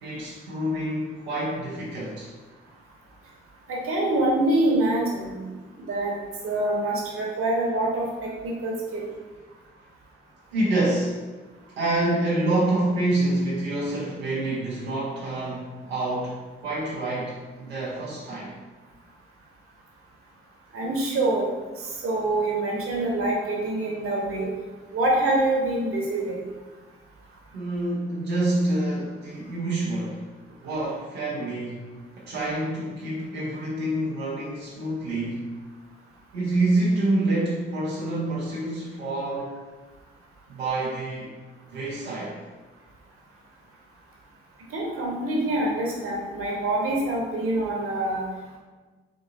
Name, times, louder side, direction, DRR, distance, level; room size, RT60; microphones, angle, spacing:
voice 1, 0.0-2.3 10.5-11.2 11.8-18.5 27.5-30.2 30.6-31.9 32.2-35.4 36.3-39.6 40.5-41.3 41.7-42.4, right 2 dB, 80° right, -7 dB, 0.7 m, -27 dB
voice 2, 3.7-5.4 5.9-6.1 6.4-9.0 20.7-21.5 21.8-24.5 24.9-26.4 44.7-48.2, right 1 dB, 45° right, -2 dB, 1.1 m, -25 dB
3.7 x 3.5 x 2.6 m, 1.3 s
figure-of-eight pair, 40°, 30 cm